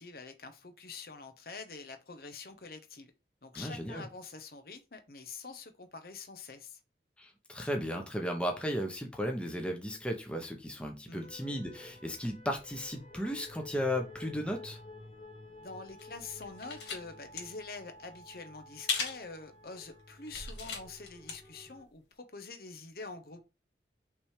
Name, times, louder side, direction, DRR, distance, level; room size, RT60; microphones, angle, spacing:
voice 1, 0.0-3.1 3.4-6.8 11.1-11.3 15.6-23.4, left 4 dB, 55° left, 1.0 m, -46 dB
voice 2, 3.5-4.1 7.2-14.8, equal, 5° left, 1.0 m, -35 dB
sound 1, 11.2-21.8, left 2 dB, 30° left, 2.1 m, -52 dB
sound 2, 16.0-17.0 17.3-17.4 18.9-19.2 19.7-19.9 20.3-21.3 21.7-21.8, left 5 dB, 75° left, 2.6 m, -36 dB
5.9 x 3.4 x 4.9 m
head